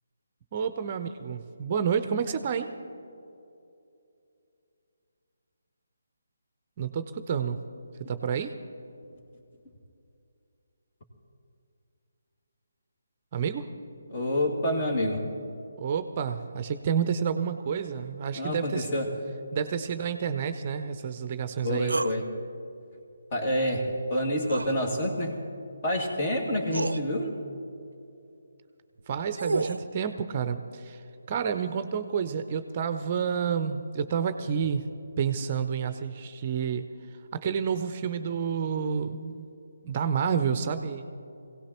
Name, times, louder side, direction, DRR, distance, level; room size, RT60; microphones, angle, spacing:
voice 1, 0.5-2.7 6.8-7.6 8.1-8.5 13.3-13.7 15.8-18.9 19.5-22.0 29.1-31.0 31.3-34.8 35.2-36.9 37.3-39.5 39.8-41.1, right 7 dB, 35° right, 10 dB, 0.6 m, -29 dB
voice 2, 14.1-15.3 18.4-19.1 21.6-22.3 23.3-25.4 25.8-27.4, equal, 35° left, 1 dB, 2.1 m, -28 dB
sound 1, 21.9-22.2 24.5-24.7 26.1-26.2 26.7-27.0 29.0-29.9, right 3 dB, 80° right, 0.5 m, -30 dB
22.5 x 17.0 x 3.0 m, 2.6 s
figure-of-eight pair, 150°, 0 cm